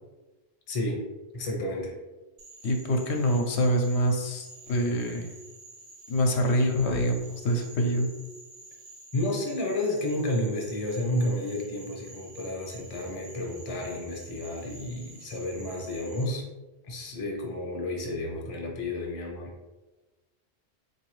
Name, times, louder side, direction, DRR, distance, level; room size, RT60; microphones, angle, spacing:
voice 1, 0.7-1.0 1.3-1.9 9.1-16.4 16.8-19.5, left 1 dB, 35° left, 0 dB, 0.6 m, -31 dB
Frog, 2.4-16.2, right 2 dB, 70° right, 1.0 m, -49 dB
voice 2, 2.6-5.3 6.1-8.1, equal, 80° left, 2 dB, 0.8 m, -25 dB
3.8 x 2.7 x 3.0 m, 1.1 s
omnidirectional pair, 1.1 m